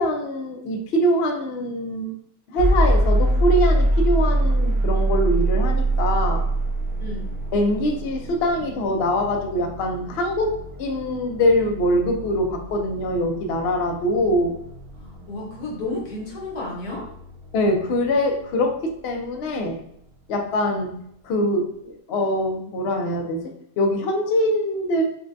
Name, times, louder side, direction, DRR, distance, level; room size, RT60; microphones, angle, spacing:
voice 1, 0.0-2.1 2.5-6.5 7.5-10.5 10.8-14.6 17.5-19.8 20.3-21.0 21.2-25.0, equal, 60° left, 3 dB, 0.7 m, -23 dB
sound 1, 2.6-18.5, right 1 dB, 70° right, 1.0 m, -25 dB
voice 2, 7.0-7.4 15.0-17.1, left 2 dB, 80° left, -3 dB, 1.6 m, -32 dB
5.7 x 2.2 x 2.5 m, 0.73 s
omnidirectional pair, 1.6 m